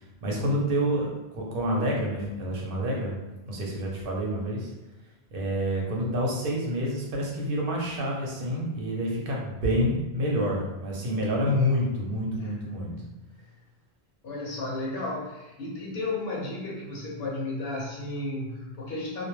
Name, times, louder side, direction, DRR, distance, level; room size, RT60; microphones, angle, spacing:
voice 1, 0.0-3.2 3.5-4.7 5.3-12.9, equal, 65° right, -2 dB, 0.8 m, -28 dB
voice 2, 14.2-19.2, left 2 dB, 75° left, -3 dB, 0.8 m, -33 dB
2.2 x 2.1 x 3.0 m, 1.1 s
omnidirectional pair, 1.0 m